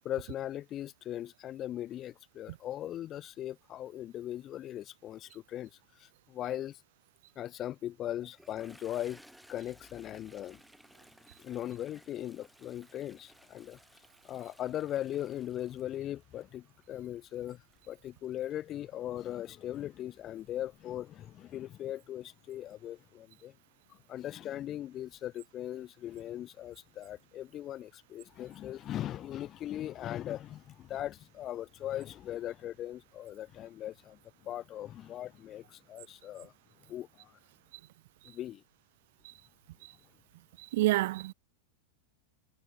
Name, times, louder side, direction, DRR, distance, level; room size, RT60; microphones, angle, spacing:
voice 1, 0.0-5.7 6.0-6.8 7.4-9.2 9.5-10.6 11.4-13.8 14.2-23.5 23.9-36.5 36.9-37.3 38.2-38.6, left 12 dB, 30° left, 2.3 m, -39 dB
Toilet flush, 8.2-18.8, equal, ahead, 5.0 m, -60 dB
voice 2, 40.6-41.3, right 18 dB, 50° right, 0.5 m, -28 dB
figure-of-eight pair, 90°, 0 cm